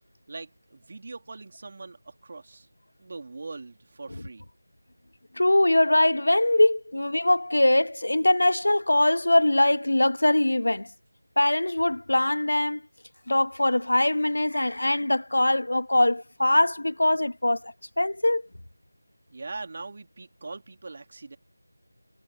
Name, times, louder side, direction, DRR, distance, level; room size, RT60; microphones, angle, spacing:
voice 1, 0.3-2.7 3.0-4.5 19.3-21.4, right 3 dB, 40° right, 3.5 m, -41 dB
voice 2, 5.4-10.9 11.4-12.8 13.3-18.4, left 1 dB, 70° left, 1.5 m, -22 dB
figure-of-eight pair, 170°, 0 cm